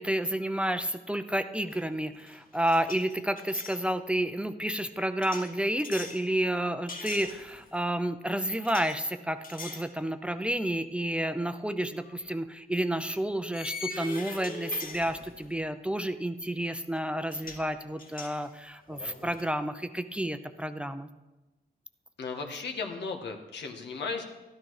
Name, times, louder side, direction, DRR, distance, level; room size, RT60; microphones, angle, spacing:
voice 1, 0.0-21.1, right 1 dB, 5° right, 9 dB, 0.6 m, -30 dB
sound 1, 1.7-3.8 5.2-6.2 6.9-7.8 8.6-9.0 9.4-9.9 10.3-10.5 12.0-12.2 13.5-15.6 16.9-17.0 17.3-17.7 18.0-19.5, left 3 dB, 55° left, 2.2 m, -42 dB
voice 2, 22.2-24.2, left 4 dB, 90° left, 4 dB, 1.7 m, -35 dB
13.0 x 12.5 x 4.8 m, 1.1 s
wide cardioid pair, 125°, 17 cm